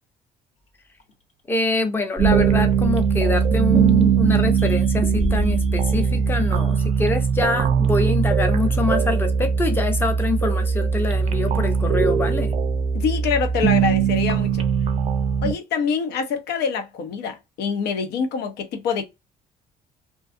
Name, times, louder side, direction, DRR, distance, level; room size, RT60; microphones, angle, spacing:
sound 1, 1.0-1.1 2.2-3.8 4.6-4.9 5.2-7.3, left 2 dB, 40° left, 0.8 m, -32 dB
voice 1, 1.5-12.5, left 3 dB, 10° left, 0.6 m, -25 dB
sound 2, 2.2-15.5, right 6 dB, 40° right, 0.4 m, -20 dB
voice 2, 12.9-14.6 15.4-19.0, left 6 dB, 75° left, 0.6 m, -25 dB
2.5 x 2.3 x 2.5 m
cardioid pair, 110°, 17 cm